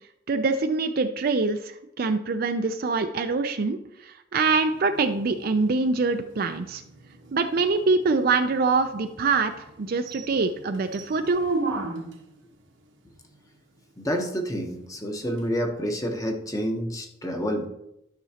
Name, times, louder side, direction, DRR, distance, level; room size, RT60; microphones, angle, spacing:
voice 1, 0.3-6.8 7.3-11.4, right 4 dB, 50° right, 7 dB, 0.5 m, -24 dB
sound 1, 4.4-12.4 15.4-15.5, right 2 dB, 75° right, 1.1 m, -36 dB
voice 2, 14.0-17.7, equal, 20° left, 3 dB, 1.0 m, -28 dB
12.0 x 6.0 x 2.9 m, 0.82 s
head